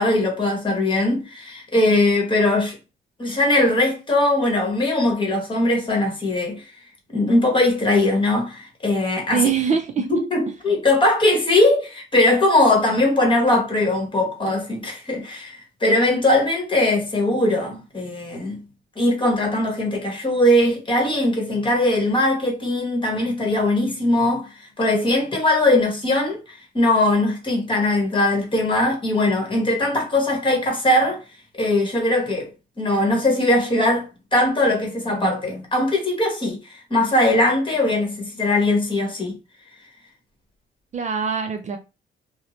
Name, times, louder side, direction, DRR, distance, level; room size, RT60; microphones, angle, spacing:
voice 1, 0.0-2.8 3.2-6.6 7.1-9.5 10.1-18.6 19.0-24.5 24.8-31.2 31.5-32.5 32.8-39.4, left 1 dB, 25° left, 1.1 m, -20 dB
voice 2, 9.3-10.1 40.9-41.8, right 6 dB, 35° right, 0.4 m, -23 dB
2.6 x 2.0 x 2.9 m
cardioid pair, 90°, 20 cm